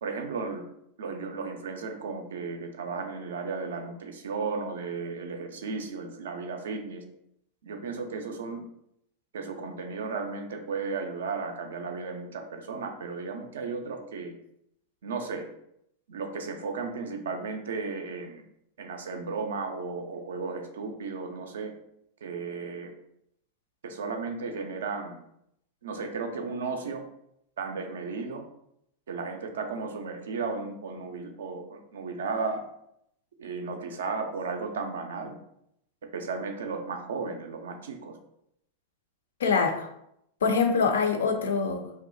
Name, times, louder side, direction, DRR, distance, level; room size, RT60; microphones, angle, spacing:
voice 1, 0.0-0.7 1.0-7.1 7.6-8.6 9.3-14.3 15.0-15.5 16.1-18.4 18.8-21.7 22.2-22.9 23.8-25.2 25.8-27.0 27.6-28.4 29.1-32.6 33.4-35.4 36.1-38.2, right 4 dB, 65° right, 5 dB, 0.3 m, -34 dB
voice 2, 39.4-39.9 40.4-41.9, left 5 dB, 65° left, 6 dB, 0.3 m, -24 dB
2.6 x 2.1 x 2.5 m, 0.77 s
figure-of-eight pair, 90°, 0 cm